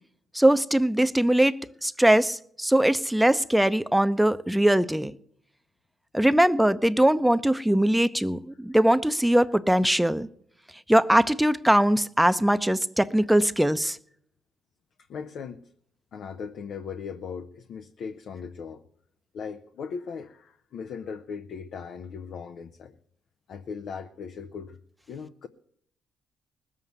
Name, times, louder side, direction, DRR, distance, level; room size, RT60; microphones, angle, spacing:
voice 1, 0.3-5.1 6.1-10.3 10.9-14.0, right 1 dB, 5° right, 0.7 m, -21 dB
voice 2, 15.1-15.7 16.1-18.8 19.3-23.0 23.5-24.8 25.1-25.5, left 6 dB, 70° left, 0.8 m, -38 dB
19.5 x 7.5 x 8.0 m
supercardioid pair, 55°, 0 cm